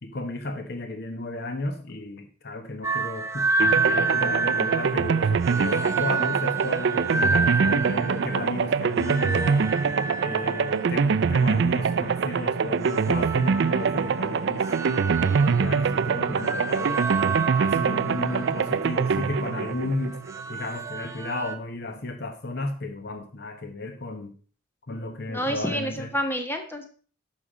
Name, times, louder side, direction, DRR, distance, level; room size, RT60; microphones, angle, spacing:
voice 1, 0.0-9.7 10.2-17.0 17.6-20.2 20.5-24.4 24.9-26.1, left 2 dB, 50° left, 8 dB, 1.0 m, -34 dB
sound 1, 2.8-21.6, right 4 dB, 15° right, 0.8 m, -30 dB
sound 2, 3.6-20.5, right 5 dB, 55° right, 0.4 m, -24 dB
voice 2, 25.3-26.9, equal, 10° left, 5 dB, 1.4 m, -29 dB
11.5 x 6.8 x 4.9 m, 0.41 s
head